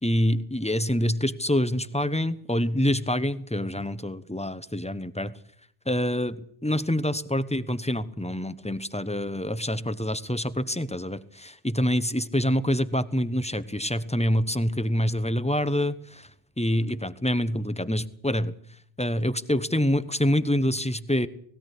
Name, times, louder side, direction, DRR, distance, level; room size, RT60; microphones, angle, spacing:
voice 1, 0.0-5.3 5.9-16.3 16.6-18.5 19.0-21.3, equal, 5° left, 13 dB, 0.9 m, -26 dB
19.0 x 18.0 x 8.3 m, 0.65 s
omnidirectional pair, 1.2 m